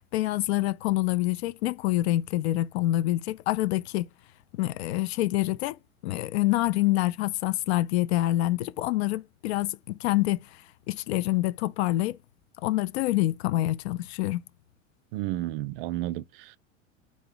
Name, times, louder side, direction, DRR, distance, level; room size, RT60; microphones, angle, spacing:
voice 1, 0.1-4.1 4.5-5.8 6.0-10.4 10.9-12.2 12.6-14.4, left 16 dB, 55° left, 0.5 m, -26 dB
voice 2, 15.1-16.6, right 15 dB, 45° right, 0.4 m, -32 dB
4.1 x 2.8 x 3.8 m
hypercardioid pair, 85°, 40 cm